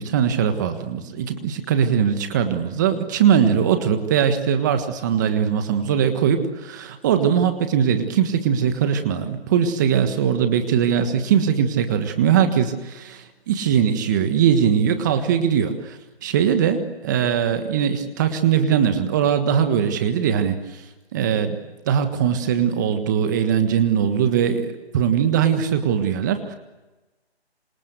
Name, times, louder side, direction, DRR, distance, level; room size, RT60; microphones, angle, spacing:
voice 1, 0.0-20.6 21.1-21.6 21.9-26.5, right 8 dB, 15° right, 8 dB, 1.5 m, -21 dB
27.5 x 26.5 x 8.0 m, 1.1 s
figure-of-eight pair, 155°, 33 cm